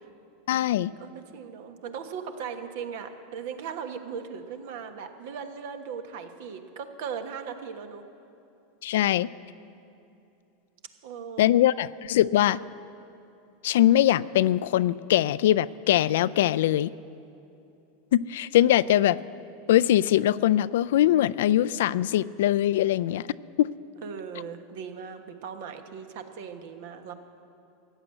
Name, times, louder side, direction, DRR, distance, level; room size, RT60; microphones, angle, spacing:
voice 1, 0.5-0.9 8.8-9.3 11.4-12.6 13.6-16.9 18.1-19.2 19.7-23.2 23.6-23.7, left 12 dB, 75° left, 18 dB, 0.3 m, -22 dB
voice 2, 1.0-8.0 11.0-11.5 24.0-27.1, right 6 dB, 65° right, 7 dB, 1.2 m, -38 dB
14.5 x 9.3 x 7.7 m, 2.7 s
hypercardioid pair, 100°, 0 cm